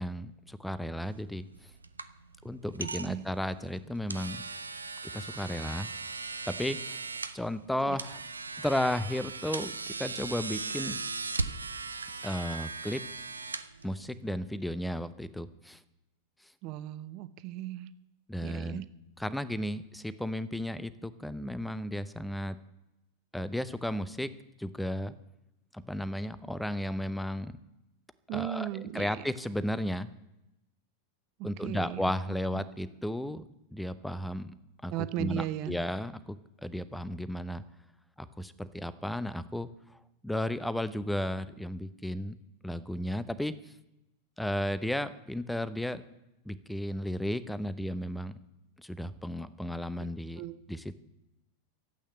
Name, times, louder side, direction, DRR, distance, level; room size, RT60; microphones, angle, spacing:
voice 1, 0.0-1.5 2.4-4.4 5.1-5.9 6.5-7.0 7.3-8.2 8.6-11.0 12.2-13.0 13.8-15.8 18.3-18.8 19.2-22.6 23.3-24.3 24.6-25.1 25.7-27.5 28.3-30.1 31.4-33.4 33.7-34.5 34.8-36.4 36.6-37.6 38.2-39.7 40.2-42.3 42.6-43.7 44.4-46.0 46.5-48.3 48.8-51.0, left 1 dB, 5° left, 15 dB, 0.8 m, -34 dB
sound 1, 1.0-14.3, right 4 dB, 80° right, 0.7 m, -39 dB
voice 2, 2.8-3.2 7.9-8.0 16.6-17.9 18.4-18.8 28.3-29.3 31.4-32.1 32.5-32.6 34.9-35.8 50.4-50.6, right 13 dB, 40° right, 15 dB, 0.8 m, -36 dB
13.0 x 8.5 x 8.8 m, 0.89 s
figure-of-eight pair, 90°, 0 cm